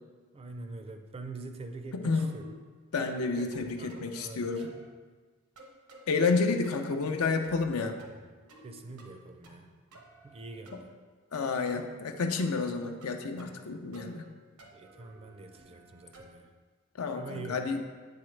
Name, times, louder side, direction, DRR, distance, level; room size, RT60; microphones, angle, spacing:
voice 1, 0.3-2.4 3.4-4.5 8.6-9.7 10.2-10.9 14.7-16.5 17.2-17.7, right 3 dB, 25° right, 7 dB, 0.4 m, -44 dB
voice 2, 1.9-2.3 2.9-4.7 6.1-8.0 10.7-10.8 11.3-14.3 17.0-17.8, left 4 dB, 80° left, 5 dB, 0.6 m, -30 dB
sound 1, 2.2-2.5 3.0-3.2 3.5-4.2 4.6-4.9 5.6-6.1 6.6-7.0 7.4-7.7 8.0-8.7 9.0-9.6 9.9-10.8 11.6-11.9 12.3-12.5 13.0-13.7 13.9-14.3 14.6-16.4, right 1 dB, 90° right, 0.9 m, -54 dB
8.5 x 3.9 x 3.2 m, 1.5 s
head